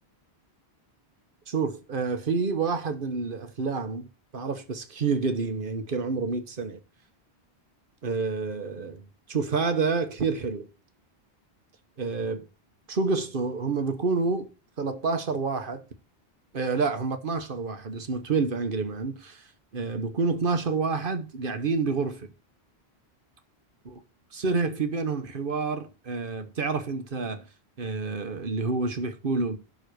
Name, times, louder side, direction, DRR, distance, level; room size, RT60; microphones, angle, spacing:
voice 1, 1.5-4.1 4.3-6.8 8.0-10.7 12.0-12.5 12.9-14.5 14.8-15.8 16.5-19.4 19.7-22.3 23.8-24.0 24.3-27.4 27.8-29.6, right 4 dB, 55° right, 1.2 m, -28 dB
11.5 x 4.0 x 6.2 m
omnidirectional pair, 1.1 m